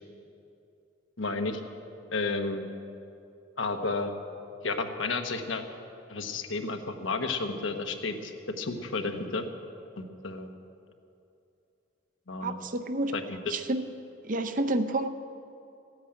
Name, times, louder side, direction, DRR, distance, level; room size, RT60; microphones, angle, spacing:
voice 1, 1.2-1.6 2.1-2.6 3.6-4.1 4.6-5.6 6.1-9.5 10.0-10.5 12.3-12.6 13.1-13.6, left 3 dB, 90° left, 5 dB, 1.2 m, -32 dB
voice 2, 12.4-13.1 13.5-13.8 14.2-15.1, right 2 dB, 45° right, 8 dB, 0.7 m, -29 dB
14.0 x 9.5 x 8.8 m, 2.7 s
head